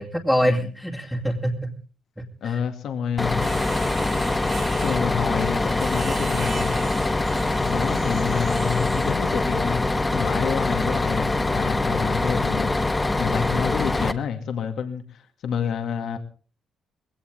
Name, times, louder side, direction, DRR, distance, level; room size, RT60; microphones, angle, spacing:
voice 1, 0.0-1.7 2.2-2.6 13.4-13.5, equal, ahead, -3 dB, 2.4 m, -25 dB
voice 2, 2.4-3.4 4.8-6.8 7.6-9.8 10.1-16.2, left 7 dB, 70° left, 5 dB, 2.2 m, -28 dB
Bus, 3.2-14.1, left 2 dB, 15° left, 1.5 m, -24 dB
sound 1, 3.4-9.3, right 6 dB, 55° right, 1.9 m, -39 dB
20.5 x 17.0 x 3.7 m, 0.39 s
cardioid pair, 90°, 0 cm